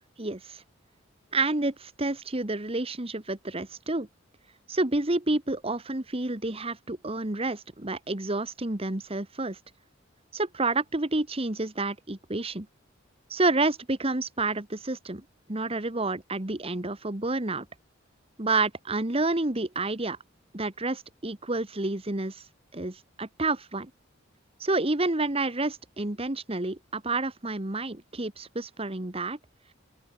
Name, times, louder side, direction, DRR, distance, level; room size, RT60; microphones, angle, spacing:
voice 1, 0.2-0.6 1.3-4.1 4.7-9.6 10.3-12.7 13.3-17.7 18.4-20.2 20.5-22.4 22.7-23.9 24.6-29.4, right 2 dB, 30° right, 1.5 m, -29 dB
open air
head